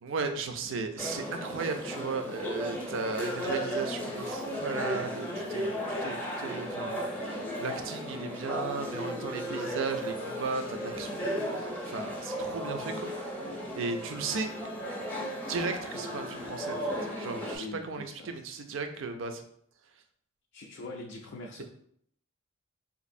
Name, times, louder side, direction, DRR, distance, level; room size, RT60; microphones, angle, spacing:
voice 1, 0.0-13.1 13.7-14.5 15.5-19.4, right 4 dB, 60° right, 6 dB, 0.4 m, -36 dB
sound 1, 1.0-17.6, equal, 10° left, 0.6 m, -35 dB
voice 2, 13.4-13.7 17.6-18.4 20.5-21.6, left 2 dB, 55° left, 0 dB, 0.3 m, -43 dB
4.1 x 2.5 x 2.6 m, 0.67 s
head